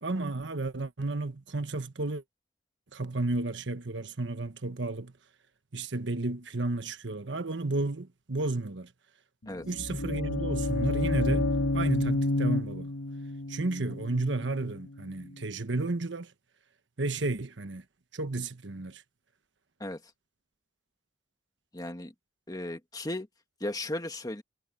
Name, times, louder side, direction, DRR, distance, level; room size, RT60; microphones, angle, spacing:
voice 1, 0.0-2.2 2.9-5.1 5.7-8.9 9.7-12.9 13.5-16.3 17.0-17.8 18.1-19.0, right 2 dB, 80° right, 1.3 m, -32 dB
sound 1, 9.5-15.3, left 2 dB, 85° left, 1.4 m, -30 dB
voice 2, 21.7-22.1 22.5-23.3 23.6-24.4, left 1 dB, 20° left, 2.0 m, -35 dB
head